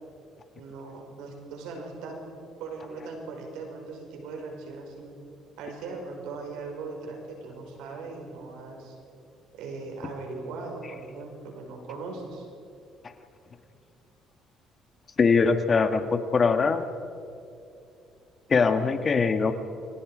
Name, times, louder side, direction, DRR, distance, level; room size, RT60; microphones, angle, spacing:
voice 1, 0.6-2.3 2.6-5.1 5.6-8.9 9.5-12.5, right 3 dB, 80° right, 2 dB, 5.6 m, -39 dB
voice 2, 15.2-16.8 18.5-19.5, left 5 dB, 35° left, 8 dB, 1.8 m, -22 dB
30.0 x 23.0 x 5.1 m, 2.7 s
supercardioid pair, 80°, 0 cm